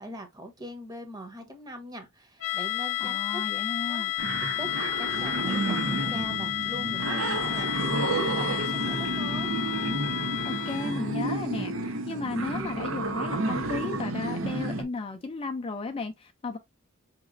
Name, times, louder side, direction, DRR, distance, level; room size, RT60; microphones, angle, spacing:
voice 1, 0.0-3.4 3.9-4.1 4.6-9.5, right 1 dB, 20° right, 0.9 m, -41 dB
sound 1, 2.4-11.1, left 17 dB, 75° left, 0.6 m, -31 dB
voice 2, 3.0-4.1 10.4-16.6, left 3 dB, 25° left, 0.4 m, -34 dB
sound 2, 4.2-14.8, right 2 dB, 75° right, 0.8 m, -31 dB
4.8 x 2.9 x 2.5 m
head